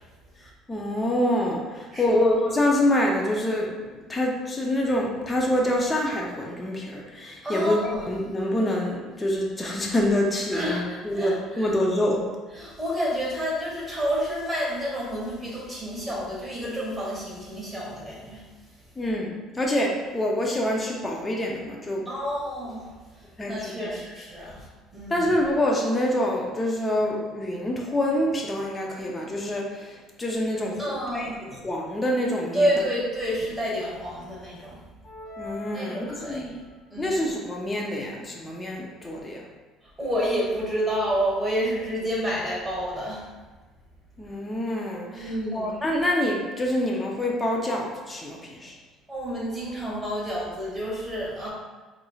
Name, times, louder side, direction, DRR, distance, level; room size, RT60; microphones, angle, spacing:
voice 1, 0.4-12.2 19.0-22.0 23.4-23.7 25.1-32.7 35.4-36.5 37.0-39.4 44.2-48.7, left 1 dB, 15° left, -1 dB, 0.5 m, -26 dB
voice 2, 7.4-8.0 10.5-10.9 11.1-11.7 12.5-18.4 22.1-22.8 23.5-24.6 24.9-25.3 30.8-31.3 32.5-34.8 35.7-36.5 36.9-37.2 40.0-43.2 45.1-45.8 49.1-51.5, equal, 10° right, -6 dB, 1.3 m, -29 dB
sound 1, 35.0-36.7, left 4 dB, 45° left, 1.0 m, -42 dB
4.9 x 3.1 x 2.3 m, 1.3 s
cardioid pair, 140°, 0 cm